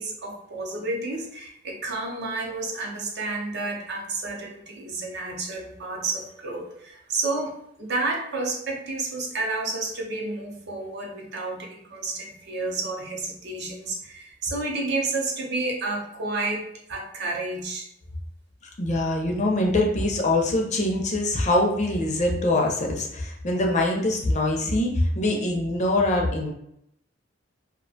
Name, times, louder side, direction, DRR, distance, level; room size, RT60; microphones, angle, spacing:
voice 1, 0.0-17.9, right 3 dB, 60° right, 0 dB, 0.6 m, -30 dB
voice 2, 18.8-26.5, left 1 dB, 40° left, 0 dB, 0.4 m, -23 dB
2.4 x 2.1 x 2.6 m, 0.75 s
head